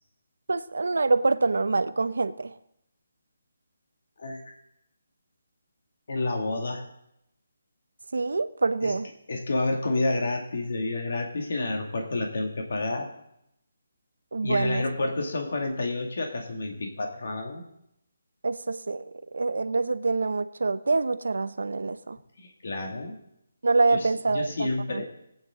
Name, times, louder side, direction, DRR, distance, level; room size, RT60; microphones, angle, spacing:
voice 1, 0.5-2.5 8.1-9.1 14.3-14.8 18.4-22.2 23.6-25.0, right 3 dB, 85° right, 13 dB, 0.7 m, -26 dB
voice 2, 4.2-4.5 6.1-6.8 8.8-8.9 9.3-13.1 14.4-17.6 22.4-23.1 23.9-25.1, left 2 dB, 50° left, 2 dB, 2.1 m, -29 dB
19.5 x 9.0 x 3.7 m, 0.78 s
hypercardioid pair, 175°, 0 cm